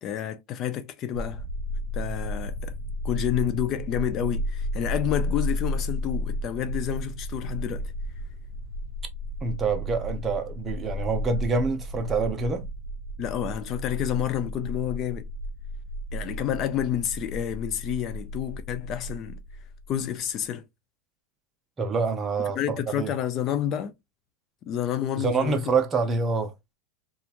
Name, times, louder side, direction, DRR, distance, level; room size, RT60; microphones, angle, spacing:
voice 1, 0.0-1.4 1.9-2.7 3.0-7.9 13.2-15.3 16.1-19.4 19.9-20.6 22.6-23.9 24.7-25.7, left 10 dB, 35° left, 0.4 m, -29 dB
sound 1, 1.1-20.0, left 1 dB, 70° right, 0.5 m, -33 dB
voice 2, 9.4-12.6 21.8-23.1 25.2-26.5, right 4 dB, 20° right, 0.6 m, -26 dB
2.8 x 2.4 x 2.4 m
supercardioid pair, 135°, 0 cm